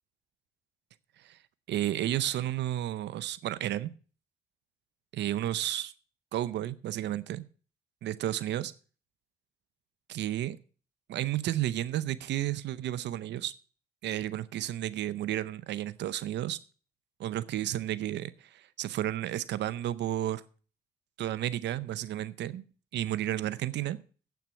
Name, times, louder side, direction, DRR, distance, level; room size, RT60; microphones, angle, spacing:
voice 1, 1.7-3.9 5.1-5.9 6.3-7.4 8.0-8.7 10.1-10.6 11.1-13.5 14.0-16.6 17.2-20.4 21.2-22.6 22.9-24.0, right 13 dB, 80° right, 17 dB, 0.6 m, -32 dB
9.3 x 8.3 x 7.1 m, 0.39 s
cardioid pair, 75°, 18 cm